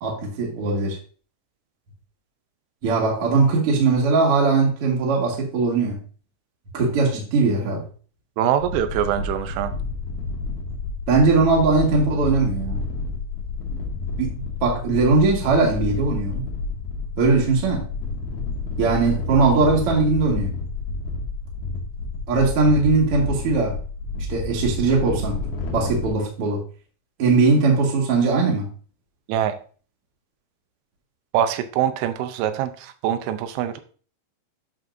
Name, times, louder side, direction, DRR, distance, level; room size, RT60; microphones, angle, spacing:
voice 1, 0.0-1.0 2.8-6.0 6.7-7.8 11.1-12.8 14.2-14.3 14.6-16.4 17.2-17.9 18.8-20.6 22.3-23.8 24.3-25.4 25.7-26.6 27.2-28.7, right 3 dB, 50° right, -1 dB, 1.8 m, -20 dB
voice 2, 8.4-9.7 29.3-29.6 31.3-33.8, right 10 dB, 90° right, 9 dB, 3.1 m, -24 dB
sound 1, 8.6-26.1, left 3 dB, 70° left, 1.9 m, -30 dB
8.4 x 6.0 x 2.6 m, 0.40 s
omnidirectional pair, 5.3 m